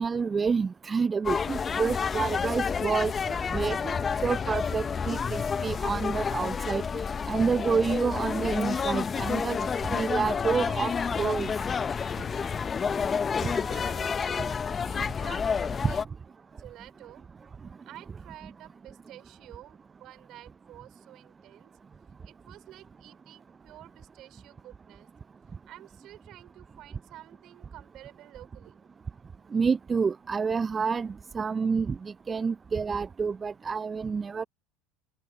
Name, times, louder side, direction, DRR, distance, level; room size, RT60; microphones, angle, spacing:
voice 1, 0.0-10.9 11.2-11.5 29.5-34.4, right 5 dB, 25° right, 0.6 m, -29 dB
sound 1, 1.2-16.0, left 6 dB, 30° left, 0.8 m, -29 dB
voice 2, 13.4-14.4 14.7-16.1 16.6-17.3 17.9-21.7 22.2-25.1 25.7-28.9, right 14 dB, 50° right, 4.2 m, -50 dB
hypercardioid pair, 85°, 0 cm